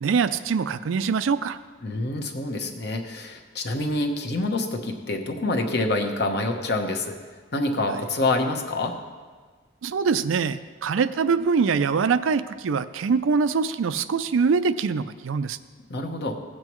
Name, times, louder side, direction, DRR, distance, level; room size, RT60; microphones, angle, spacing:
voice 1, 0.0-1.6 7.9-8.0 9.8-15.6, right 5 dB, 85° right, 13 dB, 0.4 m, -23 dB
voice 2, 1.8-7.2 7.5-9.0 15.9-16.3, left 2 dB, 55° left, 4 dB, 0.9 m, -26 dB
16.0 x 7.6 x 3.1 m, 1.5 s
head